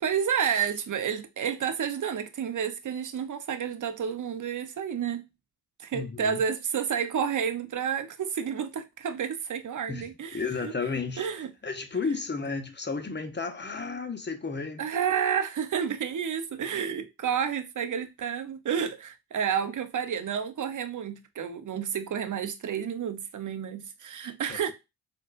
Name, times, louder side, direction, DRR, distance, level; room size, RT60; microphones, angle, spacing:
voice 1, 0.0-5.3 5.8-10.7 11.2-11.5 14.8-24.7, right 7 dB, 40° right, 0.7 m, -30 dB
voice 2, 5.9-6.4 9.9-10.1 10.3-11.3 11.6-14.8 24.2-24.6, left 4 dB, 25° left, 0.8 m, -33 dB
4.2 x 2.4 x 2.5 m
hypercardioid pair, 40°, 48 cm